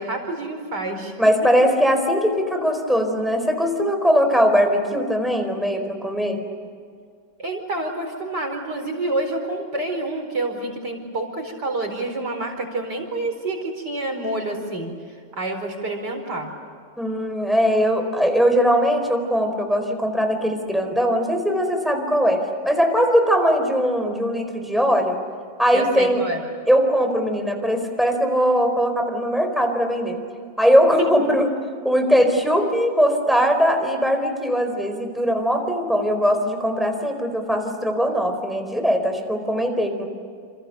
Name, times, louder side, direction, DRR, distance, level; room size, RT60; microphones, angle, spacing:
voice 1, 0.0-1.1 7.4-16.5 25.7-26.4, right 2 dB, 65° right, 4 dB, 5.2 m, -28 dB
voice 2, 1.2-6.4 17.0-25.2 25.6-26.2 26.7-30.2 30.6-31.5 31.8-40.1, equal, ahead, 4 dB, 4.4 m, -20 dB
28.5 x 28.5 x 6.8 m, 2.1 s
omnidirectional pair, 2.0 m